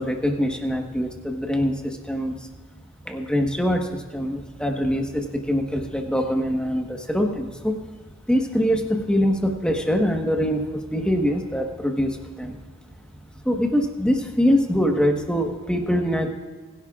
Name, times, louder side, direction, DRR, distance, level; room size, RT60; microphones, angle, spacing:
voice 1, 0.0-2.4 3.0-7.8 8.3-12.6 13.4-16.3, equal, 5° left, 2 dB, 1.3 m, -23 dB
23.5 x 11.0 x 2.5 m, 1.4 s
head